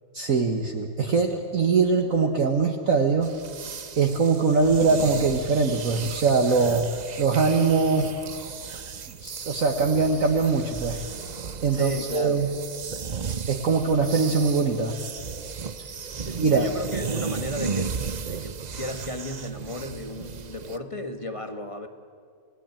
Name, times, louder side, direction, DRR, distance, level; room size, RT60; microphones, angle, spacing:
voice 1, 0.1-3.3 4.0-6.9 7.2-8.1 9.2-11.0 11.6-12.5 13.5-14.9 15.8-15.9 16.4-16.6, right 4 dB, 50° right, 4 dB, 1.6 m, -22 dB
sound 1, 3.2-20.8, right 6 dB, 90° right, 0.3 m, -35 dB
voice 2, 11.7-12.4 16.3-18.0 18.2-21.9, left 1 dB, 20° left, 7 dB, 1.3 m, -34 dB
29.0 x 18.0 x 9.0 m, 2.2 s
omnidirectional pair, 1.9 m